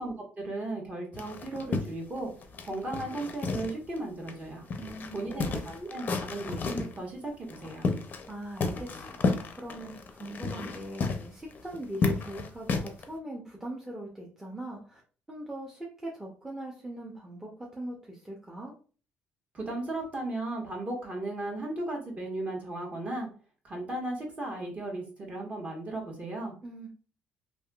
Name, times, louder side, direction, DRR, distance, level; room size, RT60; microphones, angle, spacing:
voice 1, 0.0-2.3 2.6-4.7 5.1-7.9 19.5-23.3 23.6-26.5, right 2 dB, 30° right, -1 dB, 1.2 m, -36 dB
sound 1, 1.1-4.0 4.3-4.4 4.7-7.0 7.5-8.3 8.6-13.1, left 4 dB, 45° left, 0.5 m, -32 dB
voice 2, 4.8-5.6 8.3-9.2 9.6-15.0 15.3-18.7 26.6-26.9, right 1 dB, 10° right, -2 dB, 0.7 m, -40 dB
3.4 x 2.6 x 2.3 m, 0.39 s
cardioid pair, 95°, 4 cm